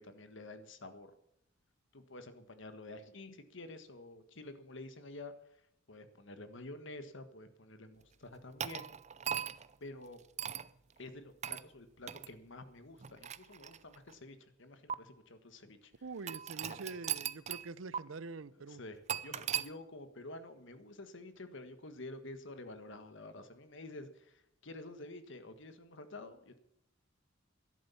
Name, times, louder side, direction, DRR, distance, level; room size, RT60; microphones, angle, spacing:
voice 1, 0.0-1.1 1.9-5.3 5.9-8.9 9.8-10.2 11.0-15.9 16.7-17.0 18.5-26.6, left 2 dB, 65° left, 9 dB, 1.6 m, -49 dB
sound 1, 8.6-9.7 10.4-10.7 11.4-11.7 12.1-12.3 13.0-14.1 14.9-15.0 16.3-17.7 17.9-18.0 19.1-19.7, right 9 dB, 35° right, 0.5 m, -38 dB
voice 2, 16.0-18.8, right 3 dB, 75° right, 18 dB, 0.7 m, -45 dB
13.0 x 11.0 x 7.0 m, 0.76 s
head